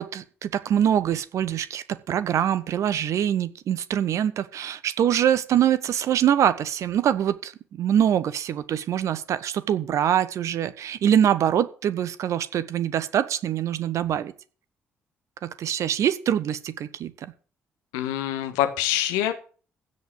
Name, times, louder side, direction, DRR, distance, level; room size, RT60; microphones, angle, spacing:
voice 1, 0.0-14.3 15.4-17.3, right 10 dB, 55° right, 14 dB, 1.1 m, -24 dB
voice 2, 17.9-19.3, left 12 dB, 70° left, 8 dB, 1.4 m, -25 dB
16.0 x 5.5 x 7.7 m, 0.39 s
figure-of-eight pair, 40°, 6 cm